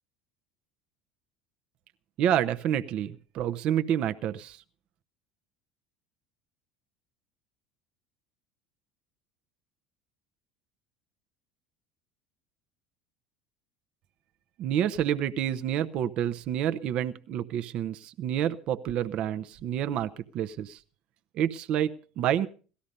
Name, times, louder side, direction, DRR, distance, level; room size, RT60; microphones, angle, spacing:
voice 1, 2.2-4.6 14.6-20.8 21.3-22.5, right 10 dB, 55° right, 10 dB, 0.8 m, -28 dB
17.5 x 13.0 x 5.3 m, 0.39 s
hypercardioid pair, 80°, 2 cm